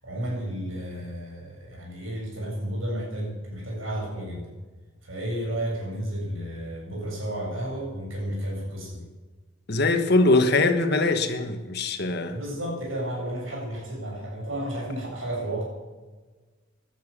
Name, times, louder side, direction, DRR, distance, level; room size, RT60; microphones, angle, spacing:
voice 1, 0.0-4.6 5.0-9.1 12.3-15.6, right 1 dB, 85° right, 7.2 m, -32 dB
voice 2, 9.7-12.4, left 2 dB, 55° left, 1.5 m, -22 dB
17.5 x 12.0 x 6.9 m
head